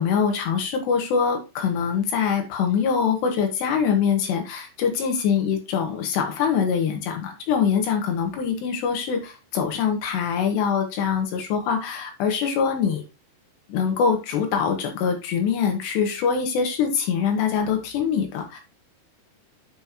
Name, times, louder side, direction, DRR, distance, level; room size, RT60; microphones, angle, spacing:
voice 1, 0.0-13.0 13.7-18.6, left 6 dB, 80° left, 4 dB, 3.5 m, -24 dB
9.4 x 5.6 x 2.9 m, 0.27 s
omnidirectional pair, 5.0 m